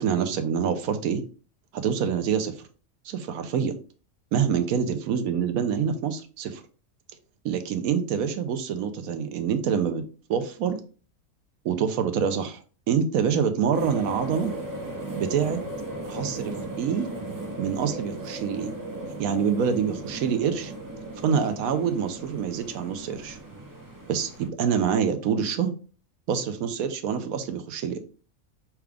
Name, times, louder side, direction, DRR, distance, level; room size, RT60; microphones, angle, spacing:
voice 1, 0.0-1.2 1.7-2.5 3.0-3.7 4.3-6.6 7.4-10.0 10.3-10.8 11.6-12.6 12.9-14.5 15.2-15.6 16.1-17.1 17.6-18.7 19.2-20.7 21.2-23.4 24.1-25.7 26.3-28.0, right 7 dB, 90° right, 8 dB, 1.1 m, -26 dB
sound 1, 13.7-24.5, right 2 dB, 25° right, 0.5 m, -36 dB
5.8 x 2.4 x 3.4 m, 0.38 s
omnidirectional pair, 1.5 m